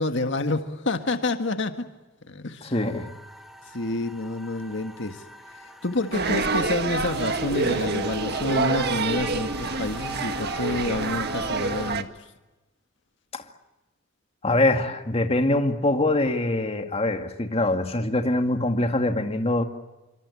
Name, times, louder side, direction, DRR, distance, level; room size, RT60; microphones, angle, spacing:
voice 1, 0.0-1.9 2.3-2.7 3.7-5.2 5.5-12.1, left 2 dB, 70° left, 1.8 m, -28 dB
voice 2, 2.6-3.1 13.3-13.4 14.4-19.6, left 2 dB, 30° left, 2.2 m, -23 dB
sound 1, 2.7-12.0, right 1 dB, ahead, 2.8 m, -41 dB
sound 2, 6.1-12.0, right 3 dB, 55° right, 1.7 m, -27 dB
27.0 x 26.0 x 8.5 m
head